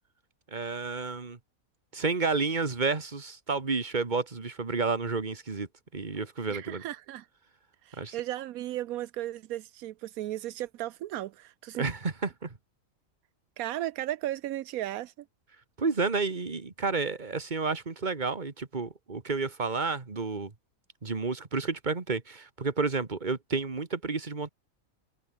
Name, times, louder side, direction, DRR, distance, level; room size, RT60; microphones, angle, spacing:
voice 1, 0.5-1.4 1.9-6.8 8.0-8.2 11.8-12.5 15.8-20.5 21.0-24.5, right 4 dB, 35° right, 1.9 m, -31 dB
voice 2, 6.5-7.3 7.8-11.9 13.6-15.1, right 14 dB, 85° right, 1.1 m, -35 dB
omnidirectional pair, 1.5 m